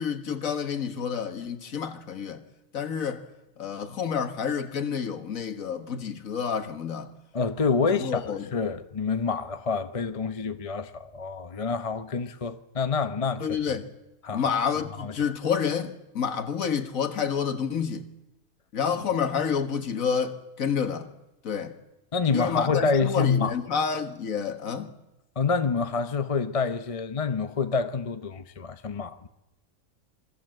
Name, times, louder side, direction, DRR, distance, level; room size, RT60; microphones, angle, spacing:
voice 1, 0.0-2.4 2.7-3.3 3.6-7.1 7.9-8.5 13.4-13.9 14.3-18.1 18.7-21.1 21.4-21.8 22.3-24.9, left 7 dB, 65° left, 2.0 m, -29 dB
voice 2, 7.3-8.2 8.5-13.5 14.2-14.5 15.0-15.1 22.1-23.5 25.4-29.3, left 5 dB, 30° left, 0.8 m, -27 dB
27.0 x 20.5 x 7.8 m
omnidirectional pair, 1.5 m